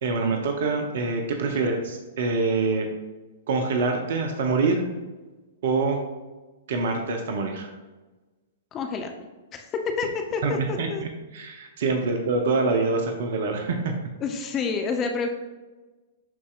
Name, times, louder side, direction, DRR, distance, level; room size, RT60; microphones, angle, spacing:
voice 1, 0.0-2.9 3.5-4.9 5.6-6.0 6.7-7.7 10.4-14.0, right 3 dB, 55° right, 5 dB, 0.8 m, -25 dB
voice 2, 8.7-9.1 9.5-11.0 14.2-15.3, left 5 dB, 25° left, 4 dB, 0.7 m, -28 dB
11.0 x 4.2 x 2.5 m, 1.2 s
figure-of-eight pair, 105°, 0 cm